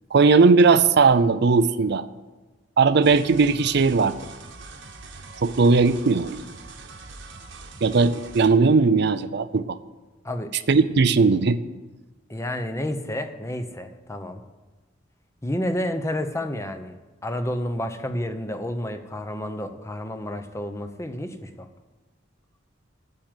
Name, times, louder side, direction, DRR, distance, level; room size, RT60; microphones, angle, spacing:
voice 1, 0.1-2.0 2.8-4.2 5.4-6.4 7.8-9.8 10.7-11.6, right 4 dB, 60° right, 13 dB, 0.5 m, -18 dB
sound 1, 3.0-8.5, right 3 dB, 75° right, 1.4 m, -42 dB
voice 2, 12.3-14.4 15.4-16.9 17.2-21.7, left 1 dB, 15° left, 8 dB, 0.8 m, -30 dB
9.6 x 7.5 x 9.1 m, 1.2 s
head